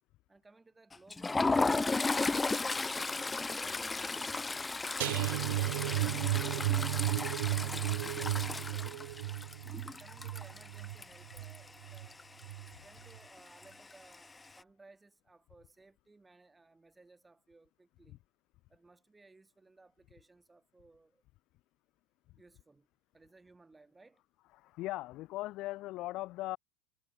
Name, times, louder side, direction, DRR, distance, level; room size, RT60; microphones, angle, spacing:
voice 1, 0.3-4.7 5.0-9.5 9.9-12.2 12.6-18.2 18.7-21.2 22.4-22.9 23.1-24.2, right 3 dB, 10° right, 6.9 m, -60 dB
Toilet flush, 0.9-11.7 12.0-12.2 12.5-12.7 13.6-14.2, left 3 dB, 10° left, 0.3 m, -34 dB
sound 1, 5.0-12.1 12.4-12.7 13.1-13.2, right 18 dB, 70° right, 0.4 m, -34 dB
voice 2, 24.5-26.6, left 18 dB, 45° left, 1.5 m, -39 dB
supercardioid pair, 125°, 0 cm